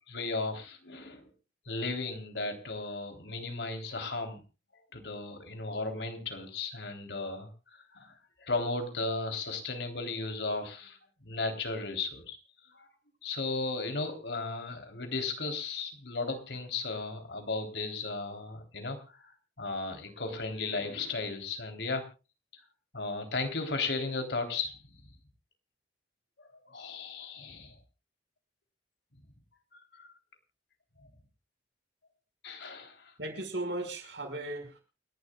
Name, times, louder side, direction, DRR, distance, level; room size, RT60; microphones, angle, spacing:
voice 1, 0.1-1.3 1.7-4.4 4.9-8.1 8.4-11.0 11.2-12.4 12.7-12.9 13.2-19.3 19.6-22.0 22.9-24.8 26.7-27.8 30.0-30.1 31.0-31.1 32.4-33.1, left 3 dB, 75° left, 5 dB, 3.5 m, -35 dB
voice 2, 33.2-34.8, right 2 dB, 75° right, 3 dB, 5.5 m, -36 dB
29.0 x 11.5 x 2.4 m, 0.31 s
head